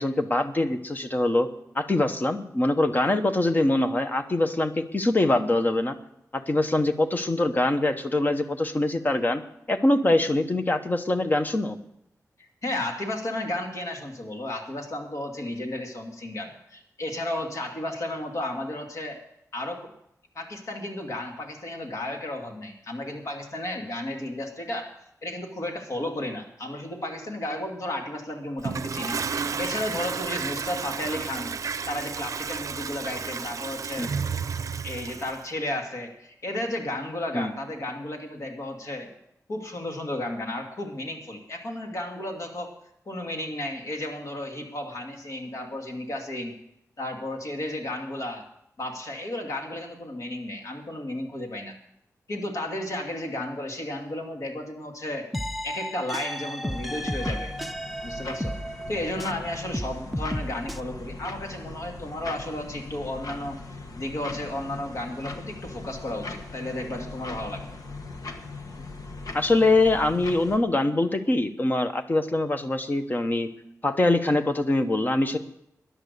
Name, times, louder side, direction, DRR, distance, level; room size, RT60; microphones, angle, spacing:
voice 1, 0.0-1.5 1.7-6.0 6.3-9.4 9.7-11.8 34.0-34.1 37.3-37.5 69.3-73.5 73.8-75.4, left 2 dB, 30° left, 8 dB, 1.0 m, -23 dB
voice 2, 12.4-19.2 19.5-19.9 20.3-24.9 25.2-31.5 31.9-34.4 34.8-39.1 39.5-42.7 43.1-46.5 47.0-48.5 48.8-51.7 52.3-55.3 55.6-57.5 58.0-63.6 64.0-67.7, left 1 dB, 60° left, 2 dB, 2.5 m, -33 dB
Toilet flush, 28.6-35.4, right 5 dB, 60° right, 0.5 m, -32 dB
sound 1, 55.3-59.4 59.7-60.8, equal, ahead, 0.6 m, -33 dB
sound 2, 56.7-70.6, left 3 dB, 75° left, 1.5 m, -40 dB
13.5 x 10.5 x 6.7 m, 0.77 s
wide cardioid pair, 125°, 6 cm